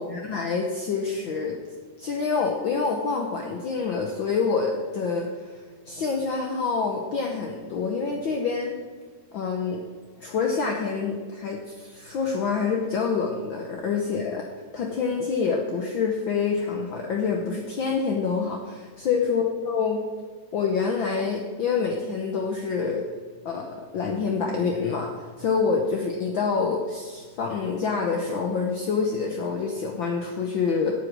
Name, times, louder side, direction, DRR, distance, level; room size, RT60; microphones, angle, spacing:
voice 1, 0.0-1.5 2.0-8.7 9.3-9.8 10.2-14.4 14.7-20.0 20.5-23.0 23.4-30.9, left 5 dB, 75° left, 1 dB, 1.1 m, -27 dB
9.5 x 8.3 x 6.4 m, 1.5 s
omnidirectional pair, 3.5 m